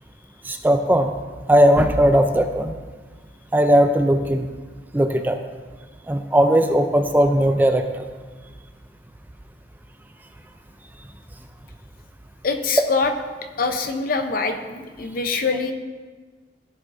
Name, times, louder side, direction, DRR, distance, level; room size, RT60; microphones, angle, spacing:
voice 1, 0.4-1.1 1.5-2.7 3.5-4.5 4.9-5.4 6.1-8.1, equal, 10° right, 6 dB, 0.4 m, -18 dB
voice 2, 12.4-13.1 13.6-15.7, left 4 dB, 50° left, 6 dB, 0.7 m, -24 dB
14.5 x 7.2 x 2.6 m, 1.4 s
head